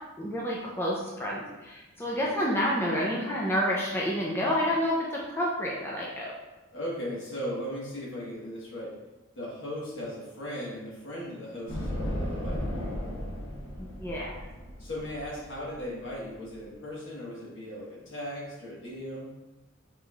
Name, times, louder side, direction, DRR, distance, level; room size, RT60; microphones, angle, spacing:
voice 1, 0.2-6.3 13.8-14.3, equal, 10° left, -4 dB, 0.5 m, -29 dB
voice 2, 2.0-2.5 6.7-9.0 9.3-12.9 14.8-19.3, equal, 65° left, -6 dB, 1.4 m, -38 dB
sound 1, 11.7-16.6, equal, 85° left, 1.2 m, -35 dB
5.4 x 3.1 x 2.3 m, 1.1 s
head